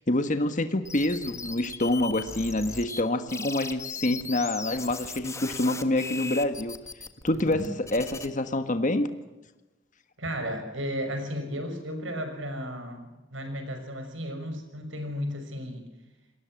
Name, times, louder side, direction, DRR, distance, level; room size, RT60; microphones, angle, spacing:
voice 1, 0.1-6.7 7.2-9.1, left 1 dB, 40° left, 9 dB, 1.5 m, -27 dB
sound 1, 0.8-3.0 3.3-8.3, left 4 dB, 15° left, 1.5 m, -38 dB
voice 2, 10.2-15.9, equal, 80° right, 7 dB, 5.9 m, -34 dB
28.0 x 20.5 x 7.7 m, 1.0 s
head